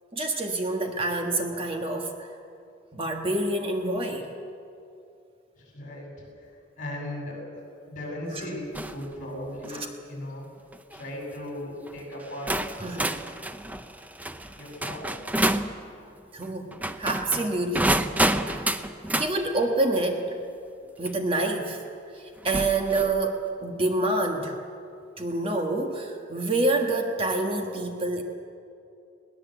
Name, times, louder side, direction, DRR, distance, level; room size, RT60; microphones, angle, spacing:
voice 1, 0.1-2.3 2.9-4.3 8.3-8.5 9.7-9.9 12.8-13.2 16.3-18.0 18.5-18.7 19.2-20.3 21.0-21.8 22.1-24.6 25.2-28.2, right 2 dB, 30° right, 3 dB, 1.4 m, -27 dB
voice 2, 5.6-6.1 6.4-6.5 6.8-7.4 7.9-10.4 10.9-12.5 14.6-15.1, left 1 dB, 45° left, -2 dB, 7.7 m, -37 dB
sound 1, 8.7-9.0 9.5-9.9 10.7-11.0 11.9-12.0 12.5-15.7 16.7-19.3 21.1-21.2 22.4-23.2, right 1 dB, 10° right, 0.6 m, -28 dB
21.5 x 19.0 x 8.0 m, 2.6 s
head